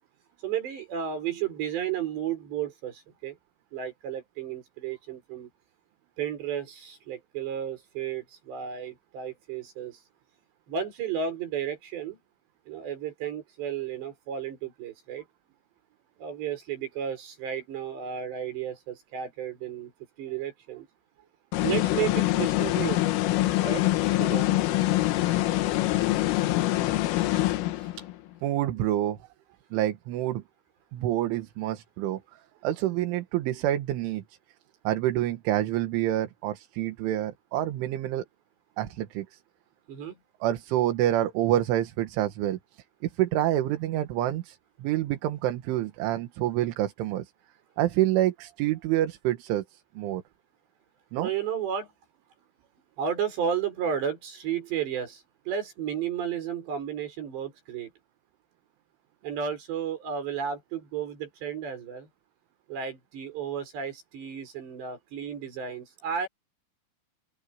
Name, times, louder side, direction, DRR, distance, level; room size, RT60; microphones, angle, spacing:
voice 1, 0.4-3.4 3.7-5.5 6.2-10.0 10.7-12.2 12.7-15.2 16.2-19.9 20.2-20.9 21.6-23.0 23.6-23.9 24.2-24.5 26.6-26.7 39.9-40.2 51.2-51.9 53.0-57.9 59.2-62.1 62.7-66.3, right 8 dB, 60° right, 7.7 m, -33 dB
sound 1, 21.5-28.1, left 16 dB, 85° left, 3.9 m, -25 dB
voice 2, 28.4-29.2 29.7-30.4 30.9-32.2 32.6-34.2 34.9-38.3 38.8-39.4 40.4-42.6 43.0-47.3 47.8-50.2 51.1-51.3, right 13 dB, 75° right, 3.9 m, -27 dB
open air
omnidirectional pair, 5.7 m